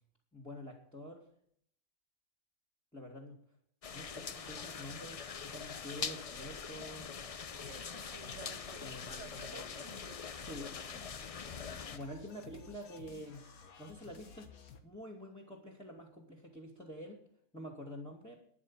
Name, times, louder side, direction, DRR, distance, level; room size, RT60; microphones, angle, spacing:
voice 1, 0.3-1.3 2.9-3.4 3.9-7.1 8.8-9.2 10.3-10.7 11.9-13.4 13.8-14.5 14.8-17.2 17.5-18.4, equal, 5° left, 2.3 m, -47 dB
sound 1, 3.8-12.0, left 6 dB, 55° left, 0.4 m, -43 dB
sound 2, 7.5-14.8, left 5 dB, 90° left, 1.8 m, -54 dB
voice 2, 7.6-10.2, right 8 dB, 60° right, 1.0 m, -54 dB
12.5 x 10.5 x 5.6 m
omnidirectional pair, 1.5 m